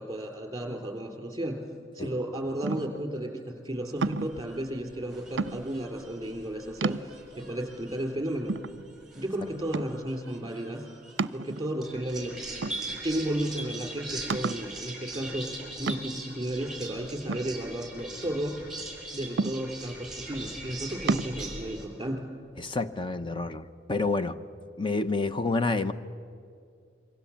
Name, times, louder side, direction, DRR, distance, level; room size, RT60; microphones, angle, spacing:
voice 1, 0.0-1.6 1.9-8.5 9.1-10.8 11.3-12.3 13.0-15.5 15.8-18.6 19.1-22.3, right 1 dB, 20° right, 3 dB, 3.7 m, -33 dB
sound 1, 2.6-3.1 4.0-4.4 5.4-5.9 6.4-6.5 6.8-7.4 8.0-8.1 8.5-9.2 9.7-10.1 11.2-11.9 12.6-13.3 13.6-13.7 14.3-14.7 15.9-16.3 17.3-18.2 19.4-20.0 21.1-21.3, right 3 dB, 70° right, 0.5 m, -32 dB
sound 2, 4.0-21.8, right 2 dB, 5° right, 5.1 m, -41 dB
voice 2, 22.6-24.4 24.8-25.9, left 3 dB, 30° left, 10 dB, 0.8 m, -28 dB
27.0 x 24.0 x 7.3 m, 2.4 s
head